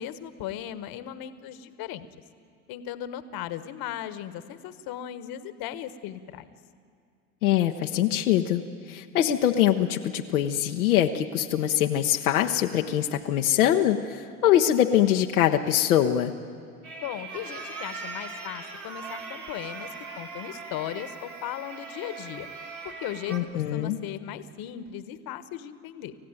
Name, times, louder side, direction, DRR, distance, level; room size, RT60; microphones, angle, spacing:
voice 1, 0.0-2.1 2.7-6.5 17.0-22.5 22.8-26.1, left 11 dB, 55° left, 12 dB, 1.4 m, -37 dB
voice 2, 7.4-8.6 8.9-16.3 23.3-24.0, left 11 dB, 80° left, 2 dB, 1.0 m, -23 dB
sound 1, 16.8-23.4, right 4 dB, 90° right, 2.5 m, -40 dB
27.5 x 15.0 x 9.1 m, 2.2 s
hypercardioid pair, 70°, 43 cm